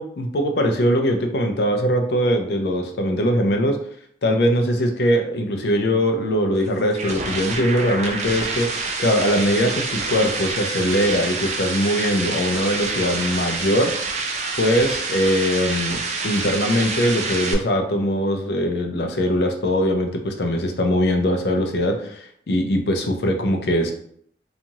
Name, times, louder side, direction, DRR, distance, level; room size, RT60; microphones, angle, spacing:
voice 1, 0.0-3.8 4.2-13.9 14.6-23.9, equal, 65° left, 4 dB, 0.5 m, -21 dB
sound 1, 6.5-17.5, right 3 dB, 40° right, 0.4 m, -27 dB
2.9 x 2.4 x 2.6 m, 0.65 s
head